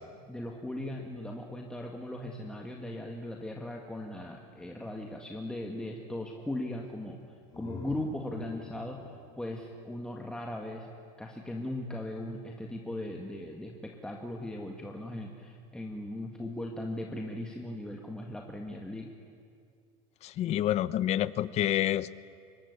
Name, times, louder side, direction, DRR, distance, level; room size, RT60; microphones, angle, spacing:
voice 1, 0.3-7.2 7.6-9.0 9.4-19.1, left 1 dB, 5° left, 1 dB, 1.8 m, -38 dB
sound 1, 7.2-10.9, left 3 dB, 25° left, 4.6 m, -48 dB
voice 2, 20.2-22.2, left 12 dB, 40° left, 17 dB, 0.8 m, -28 dB
25.5 x 23.0 x 9.7 m, 2.3 s
cardioid pair, 150°, 17 cm